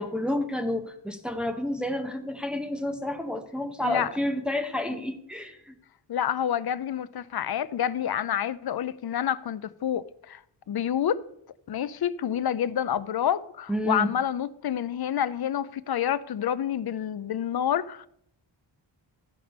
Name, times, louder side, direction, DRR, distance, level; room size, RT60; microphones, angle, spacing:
voice 1, 0.0-5.7 13.7-14.1, left 1 dB, ahead, 0.8 m, -30 dB
voice 2, 6.1-10.4 10.7-11.2 11.7-18.1, left 9 dB, 55° left, 0.5 m, -28 dB
13.5 x 5.1 x 5.3 m
wide cardioid pair, 165°, 48 cm